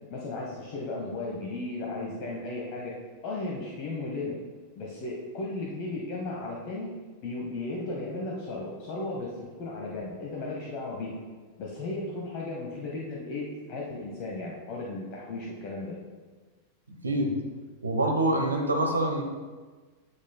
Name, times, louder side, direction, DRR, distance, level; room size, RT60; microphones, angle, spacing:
voice 1, 0.1-2.9 3.2-4.3 4.8-6.9 7.2-11.2 11.6-16.0, left 2 dB, 45° left, -2 dB, 1.0 m, -35 dB
voice 2, 16.9-17.3 17.8-19.2, right 1 dB, 75° right, 3 dB, 0.9 m, -26 dB
8.5 x 7.6 x 2.2 m, 1.4 s
figure-of-eight pair, 90°, 0 cm